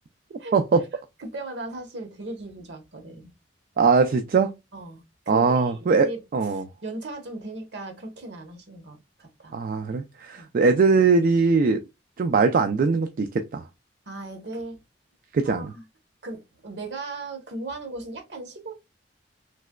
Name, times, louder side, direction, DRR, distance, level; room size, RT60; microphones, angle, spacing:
voice 1, 0.5-0.8 3.8-4.5 5.3-6.6 9.5-11.8 12.2-13.7 15.3-15.7, right 4 dB, 50° right, 0.3 m, -21 dB
voice 2, 1.2-3.3 4.7-6.2 6.5-9.6 10.4-10.5 14.1-14.8 15.4-15.8 16.2-18.7, right 2 dB, 65° right, 1.0 m, -37 dB
3.2 x 2.9 x 2.2 m
head